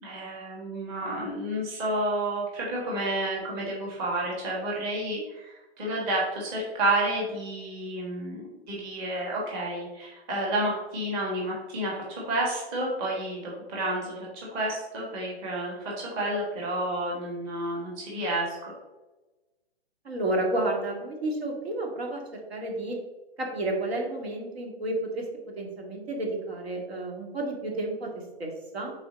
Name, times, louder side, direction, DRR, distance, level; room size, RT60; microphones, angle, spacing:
voice 1, 0.0-8.4 8.7-18.6, right 1 dB, 25° right, -4 dB, 1.5 m, -30 dB
voice 2, 20.0-23.0 23.4-25.3 25.6-28.9, right 2 dB, 70° right, 0 dB, 2.1 m, -31 dB
4.9 x 4.2 x 5.1 m, 1.1 s
hypercardioid pair, 160°, 32 cm